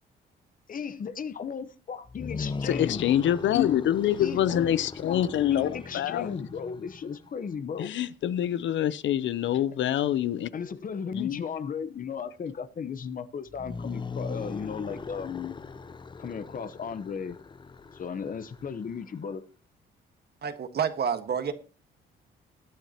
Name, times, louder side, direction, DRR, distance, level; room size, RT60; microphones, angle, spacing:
voice 1, 0.7-3.2 4.2-4.8 5.1-7.9 10.5-15.5 16.2-17.4 17.9-19.4, left 6 dB, 45° left, 1.0 m, -36 dB
sound 1, 2.1-7.2 13.5-19.1, left 4 dB, 25° left, 0.5 m, -39 dB
voice 2, 2.6-6.4 7.8-10.5 11.1-11.4, left 11 dB, 70° left, 0.7 m, -26 dB
voice 3, 20.4-21.5, right 7 dB, 55° right, 1.5 m, -29 dB
20.5 x 9.1 x 2.9 m
cardioid pair, 90°, 20 cm